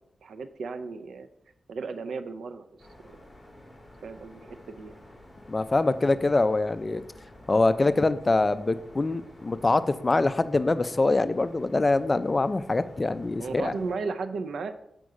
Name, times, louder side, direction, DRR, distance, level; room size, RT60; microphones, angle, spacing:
voice 1, 0.2-1.3 1.7-2.7 4.0-5.0 13.4-14.7, right 4 dB, 85° right, 10 dB, 0.6 m, -35 dB
sound 1, 2.8-13.9, left 1 dB, 10° left, 2.1 m, -50 dB
voice 2, 5.5-7.0 7.5-13.7, left 2 dB, 30° left, 13 dB, 0.5 m, -24 dB
7.7 x 5.2 x 4.8 m, 0.79 s
cardioid pair, 80°, 0 cm